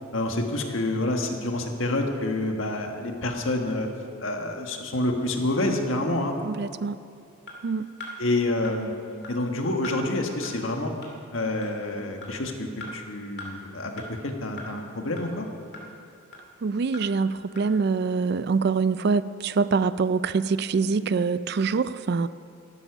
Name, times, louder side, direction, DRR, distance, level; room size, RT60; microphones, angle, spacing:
voice 1, 0.1-3.9 4.2-6.3 8.2-8.9 9.3-10.9 11.3-12.7 12.9-13.9 14.2-15.5, left 2 dB, 75° left, 3 dB, 1.6 m, -27 dB
voice 2, 6.4-7.0 7.6-7.9 16.6-22.3, right 4 dB, 50° right, 15 dB, 0.4 m, -25 dB
sound 1, 7.5-7.6 8.0-8.1 8.6-8.7 9.2-9.3 9.8-10.0 10.4-10.5 11.0-11.1 11.6-11.7 12.2-12.3 12.8-12.9 13.4-13.5 14.0-14.1 14.6-14.7 15.2-15.3 15.7-15.8 16.3-16.4 16.9-17.0 17.6-17.7, left 2 dB, 55° left, 2.5 m, -39 dB
14.5 x 11.5 x 6.1 m, 2.4 s
head